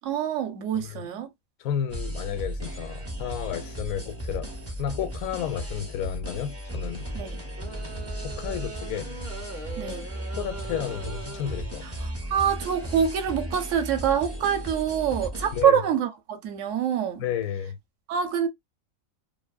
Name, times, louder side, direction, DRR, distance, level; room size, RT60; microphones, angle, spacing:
voice 1, 0.0-1.3 7.1-7.4 9.8-10.1 12.0-17.2 18.1-18.5, right 8 dB, 70° right, 1.0 m, -25 dB
voice 2, 1.6-4.5 4.8-7.1 8.2-9.2 10.4-11.9 15.5-15.8 17.2-17.8, left 9 dB, 85° left, 1.0 m, -32 dB
sound 1, 1.9-15.6, equal, 20° right, 0.4 m, -36 dB
sound 2, 7.6-11.8, right 3 dB, 40° right, 0.7 m, -41 dB
2.6 x 2.5 x 2.3 m
omnidirectional pair, 1.4 m